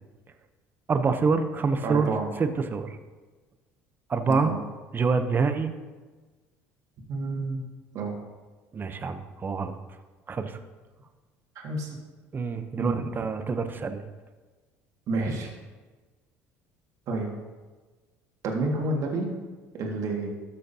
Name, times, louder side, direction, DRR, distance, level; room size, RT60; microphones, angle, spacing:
voice 1, 0.9-2.1 2.4-3.0 4.1-4.5 4.9-5.7 8.7-9.8 10.3-10.6 12.3-14.0, right 4 dB, 30° right, 9 dB, 0.8 m, -26 dB
voice 2, 1.8-2.3 4.3-4.6 7.1-7.7 7.9-8.2 11.6-12.0 12.8-13.0 15.1-15.5 17.1-17.3 18.4-19.3 19.8-20.3, right 2 dB, 55° right, 0 dB, 2.0 m, -29 dB
13.0 x 6.5 x 2.8 m, 1.3 s
supercardioid pair, 80°, 6 cm